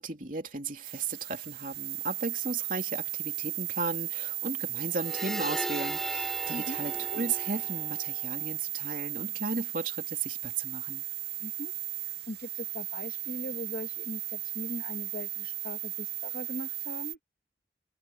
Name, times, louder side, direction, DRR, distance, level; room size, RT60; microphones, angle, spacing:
voice 1, 0.0-11.0, right 3 dB, 50° right, 3.1 m, -35 dB
sound 1, 0.8-17.1, right 14 dB, 70° right, 0.8 m, -36 dB
sound 2, 4.8-8.5, equal, ahead, 6.3 m, -38 dB
voice 2, 11.4-11.7 12.3-17.2, left 1 dB, 50° left, 1.8 m, -40 dB
head